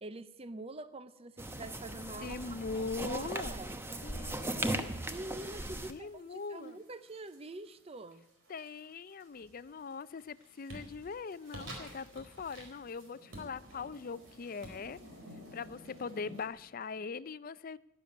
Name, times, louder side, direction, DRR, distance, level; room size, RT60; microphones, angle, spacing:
voice 1, 0.0-2.6 3.1-3.7 5.1-8.2, right 2 dB, 30° right, 13 dB, 0.5 m, -45 dB
sound 1, 1.4-5.9, right 1 dB, 10° right, 0.9 m, -38 dB
voice 2, 2.2-3.6 4.0-4.9 5.9-6.8 8.5-15.0 15.5-17.8, left 4 dB, 45° left, 17 dB, 0.4 m, -41 dB
sound 2, 5.9-16.5, left 1 dB, 80° right, 3.8 m, -58 dB
sound 3, 9.3-9.8 10.2-16.8, right 1 dB, 60° right, 4.1 m, -51 dB
12.5 x 11.0 x 9.4 m, 0.93 s
head